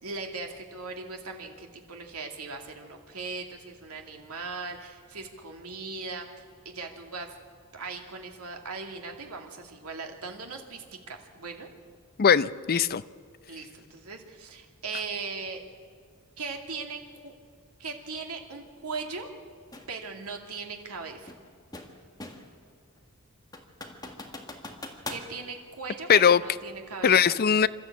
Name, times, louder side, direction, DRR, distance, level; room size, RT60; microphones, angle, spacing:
voice 1, 0.0-6.3 6.6-7.3 7.7-11.7 13.5-15.6 16.4-17.3 17.8-19.3 19.9-21.3 25.1-27.3, right 4 dB, 85° right, 3 dB, 2.4 m, -39 dB
voice 2, 12.2-13.0 26.1-26.4 27.0-27.7, left 7 dB, 45° left, 16 dB, 0.5 m, -20 dB
sound 1, 19.7-19.9 21.3-22.6 23.0-23.1 23.5-25.3, left 2 dB, 20° left, 1.8 m, -41 dB
27.5 x 13.0 x 8.5 m, 2.1 s
head